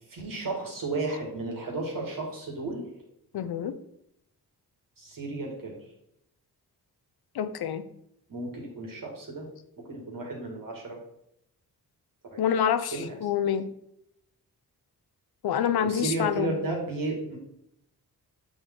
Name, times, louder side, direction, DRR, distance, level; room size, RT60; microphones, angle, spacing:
voice 1, 0.1-2.9 5.0-5.8 8.3-9.5 9.8-11.0 12.3-12.4 12.9-13.2 15.5-17.4, right 2 dB, 55° right, -1 dB, 2.4 m, -33 dB
voice 2, 3.3-3.7 7.3-7.8 12.4-13.7 15.4-16.5, left 8 dB, 75° left, 11 dB, 0.7 m, -27 dB
7.9 x 4.0 x 3.9 m, 0.77 s
cardioid pair, 80°, 38 cm